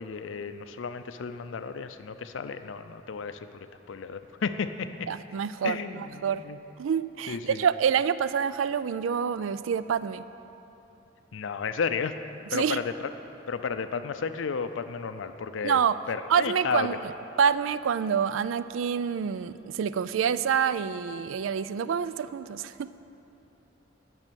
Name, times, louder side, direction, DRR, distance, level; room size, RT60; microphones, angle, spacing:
voice 1, 0.0-3.6 3.9-5.1 5.6-6.6 7.3-7.6 11.3-12.1 12.5-13.1 13.5-15.8 16.1-16.9, left 5 dB, 80° left, 10 dB, 0.4 m, -33 dB
voice 2, 5.1-6.4 6.8-10.2 12.5-12.8 15.6-16.0 16.3-16.9 17.4-22.9, right 7 dB, 90° right, 15 dB, 0.4 m, -27 dB
10.5 x 6.3 x 9.0 m, 2.9 s
head